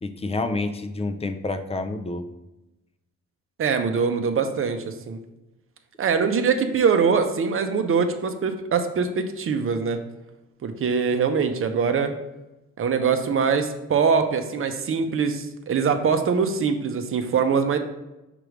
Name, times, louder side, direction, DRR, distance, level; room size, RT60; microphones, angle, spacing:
voice 1, 0.0-2.3, left 2 dB, 20° left, 8 dB, 0.5 m, -28 dB
voice 2, 3.6-5.2 6.0-10.0 10.6-12.1 12.8-17.8, right 5 dB, 45° right, 7 dB, 0.7 m, -23 dB
6.0 x 3.2 x 5.1 m, 0.98 s
cardioid pair, 90°, 30 cm